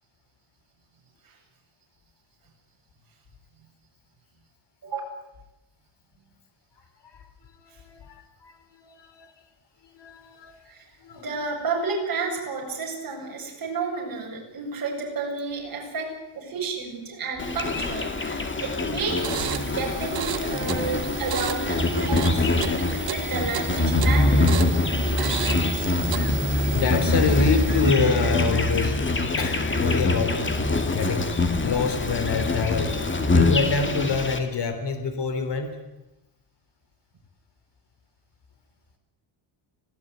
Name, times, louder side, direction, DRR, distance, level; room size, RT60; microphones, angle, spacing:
voice 1, 7.6-9.3 9.8-10.6 11.0-11.3 26.7-29.0 29.4-30.7 30.9-35.8, left 4 dB, 55° left, 8 dB, 3.6 m, -27 dB
voice 2, 11.1-19.3 19.6-24.6, right 4 dB, 45° right, -1 dB, 7.8 m, -31 dB
Insect, 17.4-34.4, left 2 dB, 25° left, 2.4 m, -24 dB
sound 1, 19.1-28.1, right 11 dB, 60° right, 1.7 m, -34 dB
25.5 x 17.0 x 9.4 m, 0.96 s
cardioid pair, 150°, 50 cm